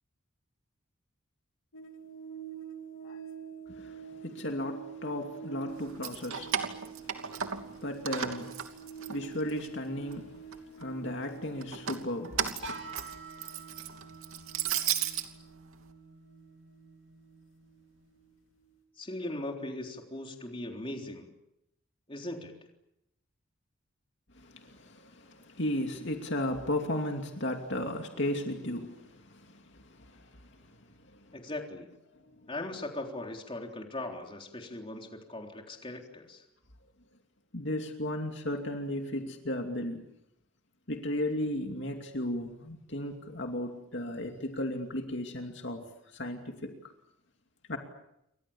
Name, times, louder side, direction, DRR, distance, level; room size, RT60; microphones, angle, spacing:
sound 1, 1.7-18.3 18.6-18.7, right 7 dB, 85° left, 2.9 m, -48 dB
voice 1, 3.7-12.7 24.3-31.5 32.1-32.5 37.5-40.0 40.9-46.9 47.7-47.8, left 1 dB, 55° left, 2.6 m, -36 dB
Keys jangling, 5.8-7.8 8.1-9.7 10.1-10.8 11.6-15.3, right 8 dB, 85° right, 2.8 m, -34 dB
sound 2, 12.6-18.4, right 3 dB, 60° right, 2.6 m, -49 dB
voice 2, 19.0-21.3 22.1-22.6 31.3-31.9 32.5-36.4, left 1 dB, 25° left, 3.7 m, -39 dB
29.5 x 24.5 x 7.2 m
head